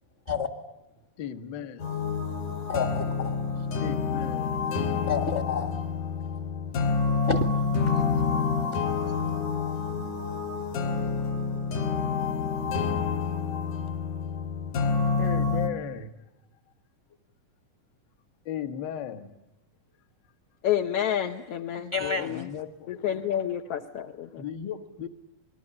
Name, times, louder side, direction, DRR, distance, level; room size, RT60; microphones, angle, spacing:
voice 1, 1.2-1.9 3.8-4.6 15.2-16.1 18.5-19.3 22.0-23.3 24.3-25.1, left 9 dB, 45° left, 9 dB, 1.7 m, -36 dB
sound 1, 1.8-15.7, left 5 dB, 85° left, 4.3 m, -28 dB
voice 2, 2.7-3.4 4.8-5.7 6.2-6.4 7.3-7.4 21.9-22.3, left 5 dB, 25° left, 6 dB, 1.5 m, -29 dB
voice 3, 20.6-22.5 22.9-24.4, left 10 dB, 60° left, 3 dB, 1.9 m, -29 dB
28.0 x 21.0 x 10.0 m, 0.92 s
omnidirectional pair, 3.5 m